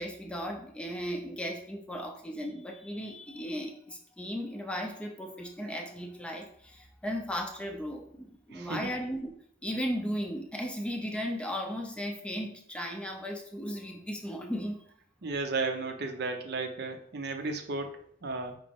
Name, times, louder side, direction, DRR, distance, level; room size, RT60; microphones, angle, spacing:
voice 1, 0.0-9.3 9.6-14.8, equal, 5° left, 2 dB, 0.4 m, -36 dB
voice 2, 8.5-8.9 15.2-18.6, right 3 dB, 60° right, 5 dB, 0.6 m, -34 dB
5.1 x 2.9 x 3.5 m, 0.64 s
head